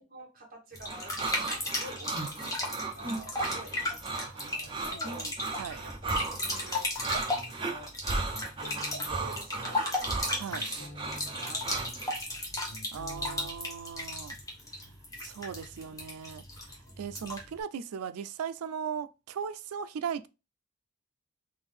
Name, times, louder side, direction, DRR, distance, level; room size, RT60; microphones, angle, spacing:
voice 1, 0.1-4.2 4.5-5.3 5.8-7.9 8.4-10.2 10.8-11.0 11.2-12.4, right 1 dB, 40° right, 1.3 m, -49 dB
sound 1, 0.7-17.6, left 1 dB, 15° left, 0.7 m, -36 dB
sound 2, 0.9-12.1, right 3 dB, 20° right, 0.5 m, -35 dB
voice 2, 4.2-4.7 5.1-5.8 10.4-10.7 12.9-14.4 14.7-14.9 15.2-20.3, right 7 dB, 80° right, 0.4 m, -38 dB
sound 3, 6.9-7.8 8.3-9.7 10.2-12.1 12.4-13.5, equal, 40° left, 1.5 m, -48 dB
3.7 x 2.6 x 3.3 m
head